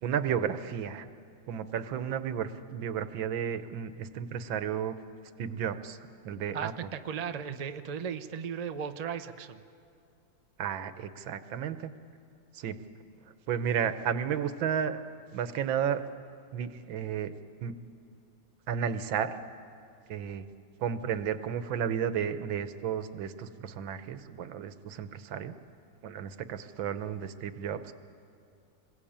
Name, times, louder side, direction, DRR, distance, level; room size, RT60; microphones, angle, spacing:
voice 1, 0.0-1.1 1.5-5.0 5.4-6.0 6.2-6.7 10.6-11.9 12.5-12.8 13.5-15.0 15.3-16.0 16.5-17.3 17.6-17.8 18.7-19.4 20.1-20.4 20.8-25.6 26.0-27.9, right 8 dB, 80° right, 11 dB, 1.7 m, -32 dB
voice 2, 6.5-9.6, right 7 dB, 60° right, 8 dB, 0.4 m, -36 dB
26.5 x 21.0 x 8.7 m, 2.5 s
omnidirectional pair, 2.1 m